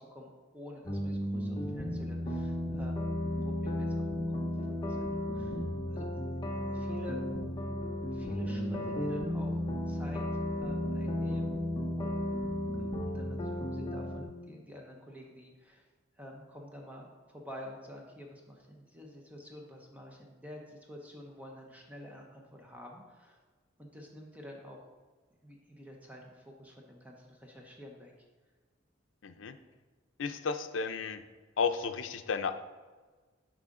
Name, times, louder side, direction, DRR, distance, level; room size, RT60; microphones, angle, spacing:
voice 1, 0.0-3.1 3.4-6.2 6.6-7.2 8.1-9.5 9.9-10.2 10.5-11.6 12.0-12.2 12.8-15.8 16.2-23.4 23.8-24.8 25.4-28.1, left 1 dB, 10° right, 0 dB, 0.8 m, -49 dB
sound 1, 0.9-14.2, left 1 dB, 25° left, 0.7 m, -34 dB
voice 2, 29.2-29.6 30.2-31.2 31.6-32.5, left 5 dB, 85° left, 9 dB, 0.5 m, -33 dB
7.7 x 4.9 x 3.7 m, 1.4 s
head